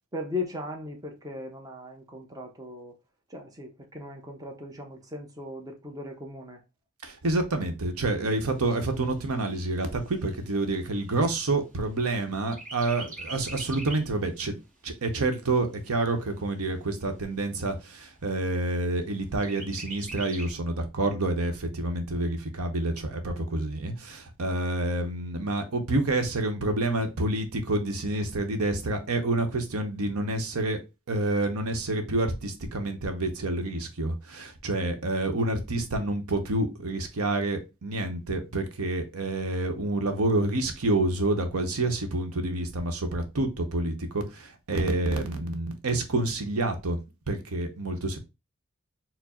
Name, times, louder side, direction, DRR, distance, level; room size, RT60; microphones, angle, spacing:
voice 1, 0.1-2.9 3.3-6.6, left 2 dB, 15° right, 0.6 m, -38 dB
voice 2, 7.0-14.6 14.8-30.8 31.1-47.0 47.3-48.2, right 2 dB, 80° right, 0.8 m, -28 dB
Chirp tweet, 8.4-12.1 12.5-14.2 14.6-14.7 15.1-16.1 16.7-16.8 17.1-17.2 17.6-18.2 19.4-20.5, right 2 dB, 35° right, 1.0 m, -43 dB
4.5 x 2.0 x 4.2 m
head